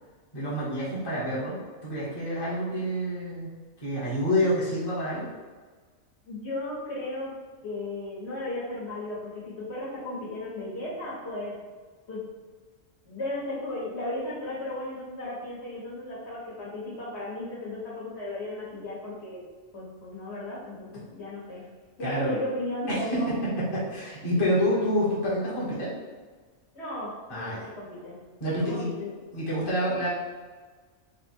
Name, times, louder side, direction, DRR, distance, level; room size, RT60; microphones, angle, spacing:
voice 1, 0.3-3.5 3.8-5.3 22.0-22.3 22.9-25.9 27.3-27.7 28.4-28.9 29.3-30.1, equal, 20° left, -8 dB, 0.9 m, -28 dB
voice 2, 6.3-7.3 7.6-11.5 12.1-12.2 13.0-19.4 19.7-21.7 22.0-23.3 26.7-28.2 28.5-29.1, left 1 dB, 60° left, -7 dB, 1.5 m, -35 dB
3.8 x 2.2 x 4.4 m, 1.4 s
omnidirectional pair, 1.3 m